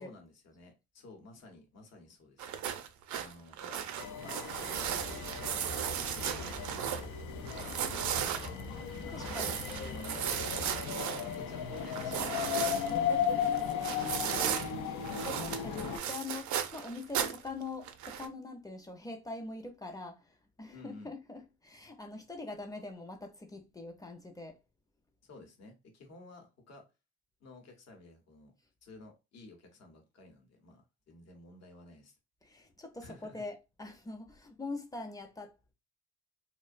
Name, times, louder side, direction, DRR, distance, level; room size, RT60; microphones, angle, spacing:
voice 1, 0.0-2.5 3.1-3.9 4.2-7.1 7.6-7.8 9.0-10.7 11.0-13.0 13.3-14.6 15.5-15.9 20.7-21.1 25.2-26.8 27.4-28.5 28.8-32.1 33.0-33.4, left 3 dB, 60° left, 0.9 m, -53 dB
sound 1, 2.4-7.1 7.5-14.7 15.0-17.5 17.8-18.3, right 9 dB, 70° right, 0.5 m, -36 dB
sound 2, 4.0-16.0, left 8 dB, 85° left, 0.5 m, -36 dB
sound 3, 4.7-10.9, left 2 dB, 35° left, 0.8 m, -46 dB
voice 2, 9.1-9.6 12.9-13.4 14.8-15.8 16.1-24.6 32.4-35.7, left 3 dB, 10° left, 0.5 m, -43 dB
2.6 x 2.1 x 2.4 m
cardioid pair, 90°, 30 cm